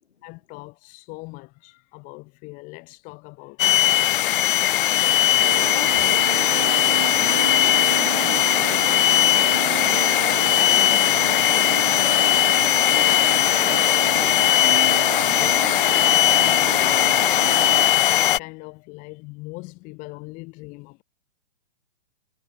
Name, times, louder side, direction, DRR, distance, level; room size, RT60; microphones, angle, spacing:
voice 1, 0.2-3.9 15.2-17.2 18.1-21.0, left 26 dB, 25° left, 2.0 m, -41 dB
sound 1, 3.6-18.4, left 13 dB, 60° left, 0.4 m, -19 dB
sound 2, 5.4-17.9, right 13 dB, 30° right, 0.4 m, -31 dB
voice 2, 5.6-6.5 7.0-9.4 9.8-12.6, left 7 dB, 80° left, 3.1 m, -40 dB
hypercardioid pair, 150°, 31 cm